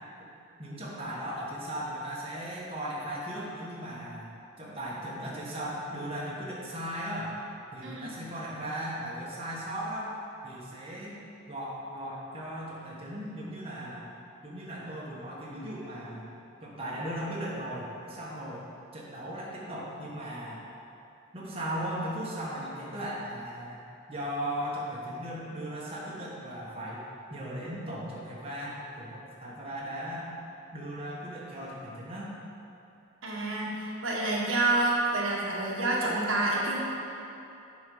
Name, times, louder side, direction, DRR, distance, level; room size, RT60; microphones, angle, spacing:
voice 1, 0.6-4.3 4.6-7.3 7.7-10.1 10.4-11.2 11.5-14.1 14.4-16.3 16.6-18.6 18.9-20.6 21.3-23.8 24.1-27.0 27.3-30.3 30.7-32.4, equal, 30° right, -6 dB, 1.3 m, -37 dB
voice 2, 7.8-8.1 33.2-36.8, right 2 dB, 75° right, -4 dB, 1.4 m, -28 dB
7.9 x 5.3 x 5.4 m, 2.8 s
head